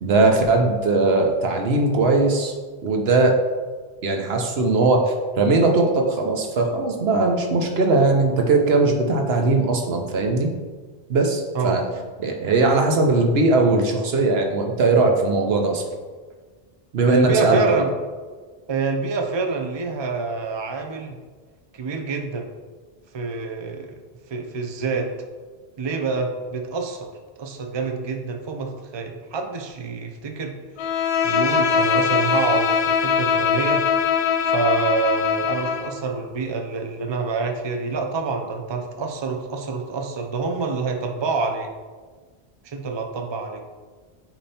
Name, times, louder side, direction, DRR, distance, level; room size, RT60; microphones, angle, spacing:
voice 1, 0.0-2.5 2.8-3.4 4.0-10.5 11.1-11.8 12.2-15.8 16.9-17.6, right 3 dB, 75° right, 3 dB, 1.1 m, -19 dB
voice 2, 17.1-17.9 18.7-21.2 21.7-22.5 23.1-24.0 24.3-25.1 25.8-27.1 27.4-30.5 31.2-33.8 34.5-41.7 42.6-43.6, right 4 dB, 35° right, 3 dB, 0.5 m, -26 dB
Bowed string instrument, 30.8-36.0, left 6 dB, 75° left, 0.8 m, -21 dB
8.6 x 3.0 x 4.2 m, 1.4 s
omnidirectional pair, 1.0 m